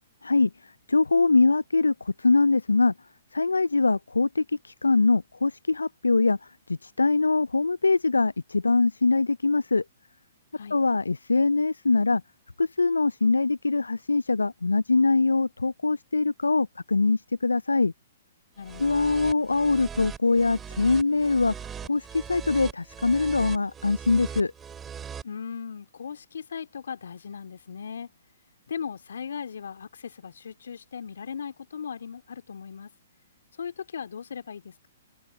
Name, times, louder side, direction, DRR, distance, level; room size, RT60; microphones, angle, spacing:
voice 1, 0.9-2.9 3.3-6.4 6.7-9.8 10.7-12.2 12.6-17.9 18.8-21.5 21.9-24.5, left 3 dB, 85° left, 0.4 m, -23 dB
voice 2, 18.6-19.0 25.2-28.1 28.7-32.9 33.6-34.9, left 7 dB, 70° left, 2.5 m, -38 dB
sound 1, 18.6-25.2, right 7 dB, 15° right, 2.4 m, -40 dB
figure-of-eight pair, 120°, 0 cm